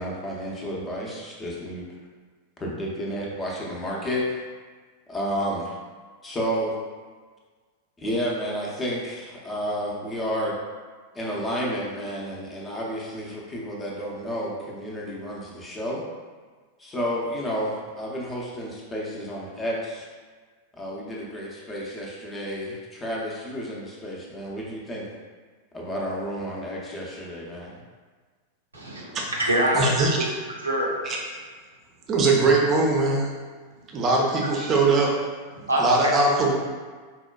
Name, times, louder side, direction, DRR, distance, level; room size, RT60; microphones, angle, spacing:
voice 1, 0.0-1.9 2.6-4.4 5.1-5.8 6.2-6.8 8.0-10.5 11.1-16.0 16.8-20.1 20.8-25.1 25.7-27.7, equal, 15° left, -4 dB, 0.6 m, -31 dB
voice 2, 28.7-30.1 30.6-30.9 34.7-34.8 35.7-36.1, right 1 dB, 80° right, -4 dB, 0.6 m, -25 dB
voice 3, 29.7-30.2 31.0-31.2 32.1-33.3 33.9-35.1 35.8-36.5, right 3 dB, 30° right, -1 dB, 0.6 m, -21 dB
4.2 x 2.2 x 2.3 m, 1.5 s
figure-of-eight pair, 90°, 0 cm